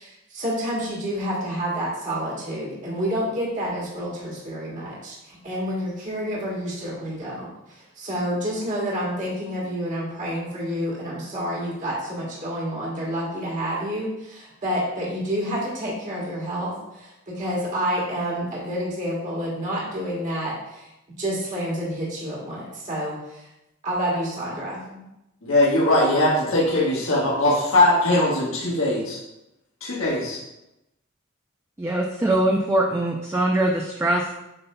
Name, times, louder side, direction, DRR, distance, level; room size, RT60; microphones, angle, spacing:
voice 1, 0.0-20.9 21.2-23.5 23.8-25.0, equal, 40° right, -4 dB, 1.4 m, -29 dB
voice 2, 25.4-29.2 29.8-30.4, left 1 dB, 75° left, -6 dB, 1.4 m, -20 dB
voice 3, 31.8-34.3, right 1 dB, 15° right, 0 dB, 0.4 m, -22 dB
7.9 x 5.3 x 2.2 m, 0.91 s
head